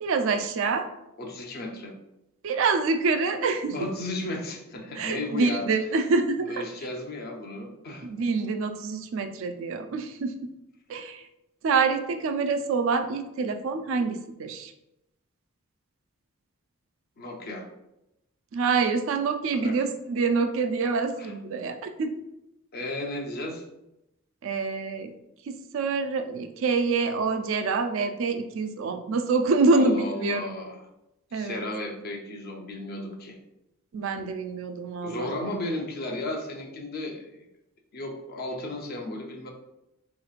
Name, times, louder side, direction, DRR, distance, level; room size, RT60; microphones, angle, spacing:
voice 1, 0.0-0.9 2.4-3.8 5.0-6.6 8.0-10.5 10.9-11.3 11.6-14.7 18.5-22.1 24.4-25.1 25.5-30.5 31.3-31.6 33.9-35.3, right 4 dB, 60° right, 8 dB, 0.3 m, -26 dB
voice 2, 1.2-1.9 3.7-5.6 6.5-8.1 17.2-17.7 19.5-19.8 21.2-21.3 22.7-23.6 29.7-30.8 31.3-33.4 35.0-37.3 37.9-39.5, left 1 dB, 45° left, 1 dB, 0.5 m, -34 dB
3.7 x 2.9 x 2.4 m, 0.89 s
head